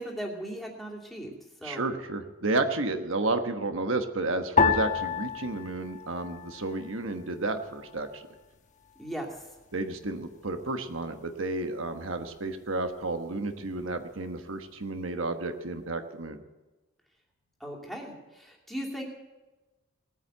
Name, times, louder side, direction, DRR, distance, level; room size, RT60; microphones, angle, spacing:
voice 1, 0.0-1.3 1.6-1.9 9.0-9.3 17.6-19.0, right 1 dB, ahead, -1 dB, 2.7 m, -37 dB
voice 2, 1.6-8.2 9.7-16.4, right 2 dB, 80° right, 7 dB, 1.2 m, -31 dB
sound 1, 4.6-7.1 7.3-8.3 8.9-9.3, left 6 dB, 35° left, 1.1 m, -29 dB
18.5 x 9.2 x 7.9 m, 1.1 s
head